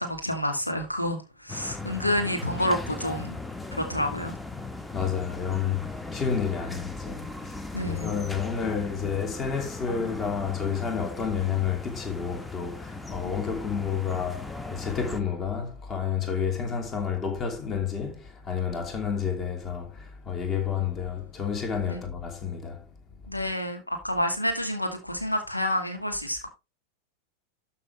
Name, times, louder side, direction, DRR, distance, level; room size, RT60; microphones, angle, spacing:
voice 1, 0.0-3.4 3.7-4.4 7.7-8.2 13.2-13.3 21.8-22.0 23.3-26.5, left 1 dB, 85° left, 2.1 m, -29 dB
sound 1, 1.5-15.2, left 2 dB, 5° left, 1.1 m, -38 dB
voice 2, 4.9-22.9, left 7 dB, 25° left, 2.9 m, -30 dB
12.5 x 6.2 x 3.3 m
figure-of-eight pair, 90°, 0 cm